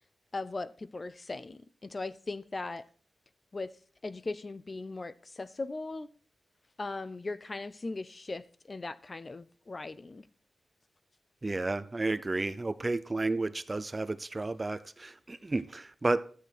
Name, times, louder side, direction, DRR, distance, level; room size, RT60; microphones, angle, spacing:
voice 1, 0.3-2.8 3.5-3.7 4.0-6.1 6.8-10.3, left 3 dB, 30° left, 0.5 m, -39 dB
voice 2, 11.4-16.2, right 2 dB, 25° right, 0.6 m, -32 dB
13.0 x 8.3 x 4.5 m
wide cardioid pair, 140°, 0 cm